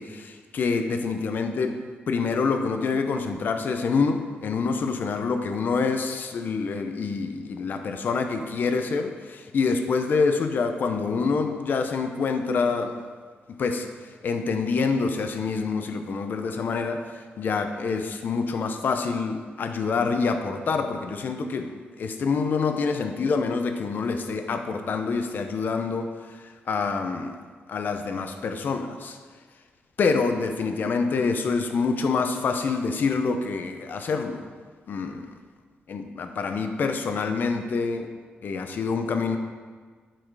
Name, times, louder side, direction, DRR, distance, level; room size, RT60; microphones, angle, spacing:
voice 1, 0.0-1.8 2.1-12.9 13.5-13.9 14.2-21.7 22.0-26.4 26.7-27.3 27.7-29.2 30.0-34.5 34.9-35.3 35.9-38.1 38.4-39.4, left 4 dB, 55° left, 7 dB, 0.6 m, -26 dB
7.6 x 4.4 x 4.8 m, 1.5 s
wide cardioid pair, 140°, 4 cm